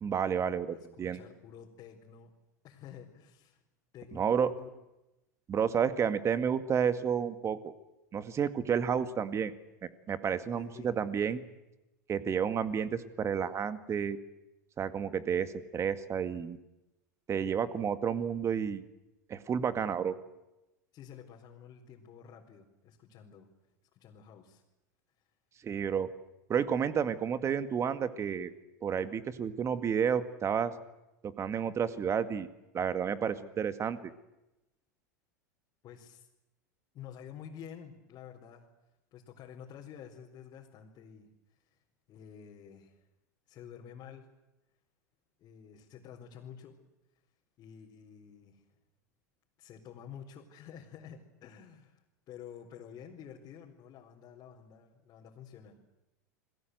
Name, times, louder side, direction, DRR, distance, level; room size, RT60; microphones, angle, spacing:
voice 1, 0.0-1.2 4.1-4.5 5.5-7.7 8.1-9.5 9.8-11.4 12.1-14.2 14.8-16.6 17.3-18.8 19.3-20.2 25.6-26.1 26.5-28.5 28.8-30.7 31.4-32.5 32.7-34.0, right 7 dB, 30° right, 12 dB, 2.1 m, -31 dB
voice 2, 0.7-2.3 2.6-3.6 3.9-4.7 10.5-10.9 20.9-23.5 23.9-24.6 35.8-36.3 36.9-38.7 39.1-41.8 42.1-43.0 43.5-44.3 45.4-46.8 47.6-48.6 49.6-55.9, left 8 dB, 40° left, -2 dB, 4.1 m, -50 dB
29.0 x 21.5 x 8.0 m, 0.96 s
hypercardioid pair, 90°, 10 cm